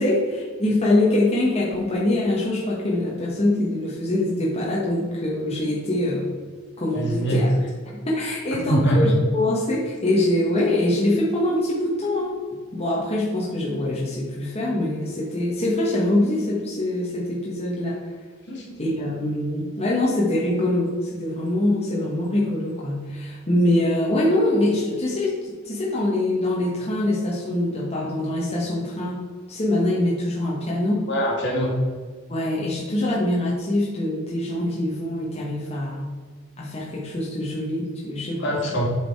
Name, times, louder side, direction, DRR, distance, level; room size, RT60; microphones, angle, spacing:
voice 1, 0.0-6.3 6.8-7.5 8.0-12.3 12.7-18.2 18.8-29.2 29.5-31.0 32.3-36.1 36.6-38.7, left 1 dB, 30° left, -5 dB, 1.2 m, -24 dB
voice 2, 6.9-7.4 8.5-9.1 18.5-18.7 31.1-31.7 38.4-38.9, equal, 60° left, -2 dB, 2.2 m, -23 dB
8.1 x 5.0 x 4.6 m, 1.5 s
head